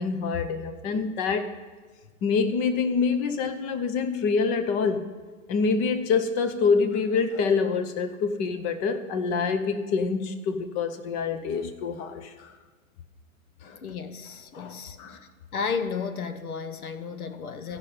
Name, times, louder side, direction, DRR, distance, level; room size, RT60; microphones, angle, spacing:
voice 1, 0.0-1.5 2.2-5.1 5.5-12.5 13.6-13.8 14.5-15.2, left 5 dB, 20° left, 8 dB, 0.5 m, -26 dB
voice 2, 13.8-15.2 15.5-17.8, left 5 dB, 80° left, 10 dB, 1.0 m, -33 dB
15.5 x 5.4 x 5.7 m, 1.4 s
hypercardioid pair, 125°, 43 cm